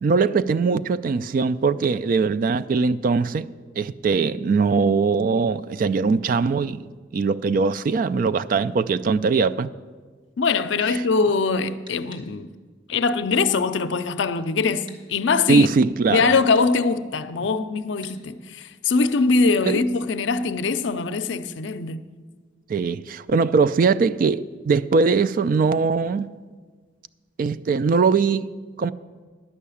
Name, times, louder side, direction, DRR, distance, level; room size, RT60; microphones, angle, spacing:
voice 1, 0.0-3.5 3.8-6.8 7.1-9.7 15.5-16.3 19.7-19.8 22.7-26.3 27.4-28.5 28.8-28.9, right 4 dB, 45° right, 0.3 m, -21 dB
voice 2, 10.4-12.5 12.9-15.7 16.1-22.0, left 4 dB, 75° left, 0.5 m, -22 dB
sound 1, 11.9-12.3 14.9-15.0 16.5-16.7 18.0-18.2, equal, 25° right, 1.4 m, -45 dB
11.0 x 5.6 x 8.4 m
head